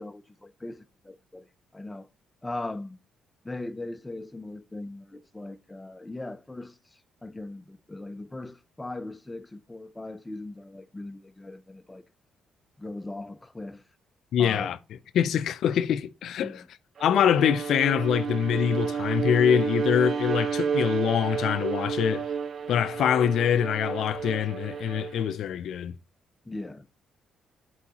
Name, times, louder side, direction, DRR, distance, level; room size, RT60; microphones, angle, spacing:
voice 1, 0.0-1.5 1.7-2.1 2.4-3.0 3.4-6.8 7.2-12.0 12.8-13.8 14.4-14.8 16.4-16.7 26.5-26.9, left 2 dB, 15° left, 0.5 m, -39 dB
voice 2, 14.3-14.8 15.1-16.6 17.0-22.3 22.7-25.9, left 9 dB, 75° left, 0.4 m, -24 dB
Bowed string instrument, 17.0-25.4, right 6 dB, 50° right, 0.3 m, -31 dB
8.5 x 4.6 x 2.9 m
cardioid pair, 90°, 0 cm